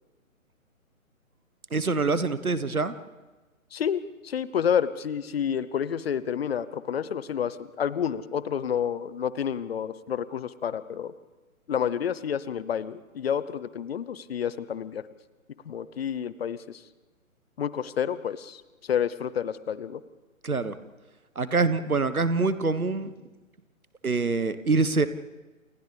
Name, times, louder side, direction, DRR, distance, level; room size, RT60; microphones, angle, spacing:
voice 1, 1.7-2.9 20.4-20.7 21.3-23.1 24.0-25.1, right 3 dB, 85° right, 13 dB, 1.4 m, -25 dB
voice 2, 3.7-11.1 11.7-15.0 15.7-16.8 17.6-20.0, left 8 dB, 45° left, 16 dB, 0.9 m, -29 dB
29.0 x 28.0 x 3.4 m, 1.2 s
figure-of-eight pair, 135°, 42 cm